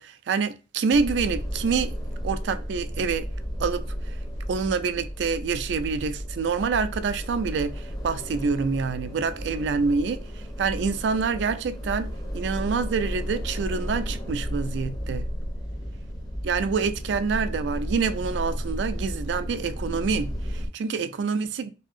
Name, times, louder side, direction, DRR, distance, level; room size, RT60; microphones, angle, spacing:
voice 1, 0.0-2.0 2.2-3.3 3.6-4.1 4.5-10.2 10.6-12.1 12.3-15.3 16.4-21.7, right 5 dB, 70° right, 0.3 m, -27 dB
sound 1, 0.9-20.7, equal, 20° left, 0.5 m, -33 dB
2.8 x 2.6 x 2.4 m
head